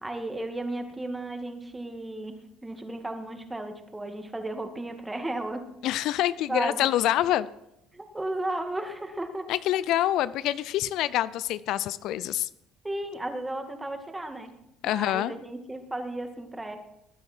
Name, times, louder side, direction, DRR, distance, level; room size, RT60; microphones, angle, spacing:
voice 1, 0.0-2.3 2.6-5.7 6.5-6.9 7.9-9.5 12.8-14.5 14.8-16.8, right 1 dB, 15° right, 6 dB, 2.1 m, -34 dB
voice 2, 5.8-7.5 9.5-12.5 14.8-15.3, left 13 dB, 70° left, 18 dB, 0.4 m, -26 dB
20.5 x 9.7 x 4.5 m, 0.83 s
supercardioid pair, 80°, 0 cm